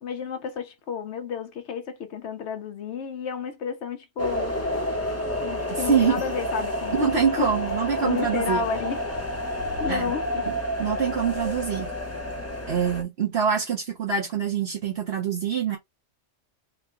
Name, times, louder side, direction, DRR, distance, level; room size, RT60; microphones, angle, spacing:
voice 1, 0.0-4.5 5.4-7.0 7.4-7.5 8.0-9.1 9.8-10.4, left 6 dB, 70° left, 0.9 m, -31 dB
sound 1, 4.2-13.0, equal, 15° left, 0.8 m, -29 dB
voice 2, 5.7-6.2 6.9-8.6 9.9-10.1 10.5-10.6 10.8-11.9 12.7-15.8, right 7 dB, 60° right, 1.2 m, -25 dB
3.6 x 2.2 x 3.7 m
omnidirectional pair, 1.2 m